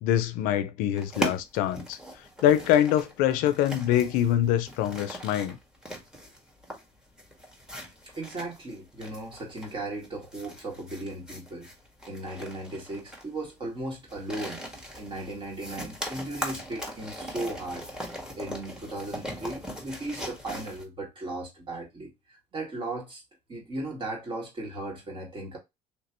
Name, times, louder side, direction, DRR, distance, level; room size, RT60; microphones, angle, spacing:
voice 1, 0.0-2.0 2.4-5.6, left 11 dB, 75° left, 0.5 m, -24 dB
sound 1, 1.0-20.8, equal, 5° right, 1.5 m, -39 dB
voice 2, 8.1-11.7 12.1-14.6 15.0-17.9 18.4-23.2 23.5-25.6, right 2 dB, 35° right, 1.9 m, -36 dB
3.3 x 3.0 x 3.0 m
supercardioid pair, 80°, 14 cm